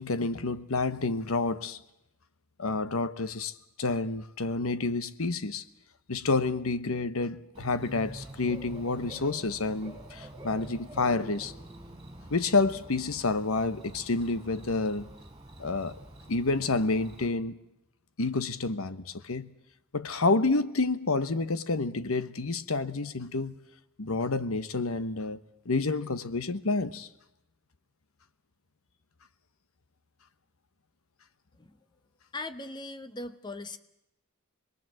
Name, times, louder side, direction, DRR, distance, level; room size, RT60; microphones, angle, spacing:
voice 1, 0.0-1.8 2.6-5.6 6.1-11.5 12.3-15.1 15.6-16.0 16.3-17.6 18.2-19.5 19.9-23.6 24.0-25.4 25.6-27.1, left 3 dB, 70° left, 1.0 m, -29 dB
Bird / Cricket, 7.5-17.3, right 1 dB, 20° right, 3.9 m, -47 dB
voice 2, 32.3-33.8, left 2 dB, 20° left, 1.0 m, -39 dB
26.5 x 21.0 x 7.7 m
head